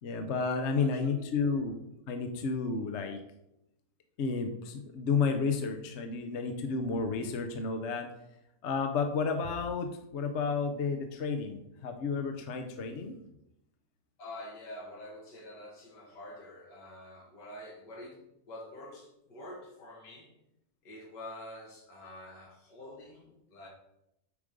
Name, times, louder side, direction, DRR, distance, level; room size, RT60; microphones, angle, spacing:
voice 1, 0.0-1.8 2.1-3.2 4.2-8.1 8.6-13.2, left 5 dB, 55° left, 6 dB, 0.9 m, -31 dB
voice 2, 0.8-1.4 14.2-20.3 20.8-23.7, left 1 dB, 75° left, -3 dB, 2.3 m, -47 dB
8.4 x 4.9 x 5.2 m, 0.83 s
omnidirectional pair, 1.9 m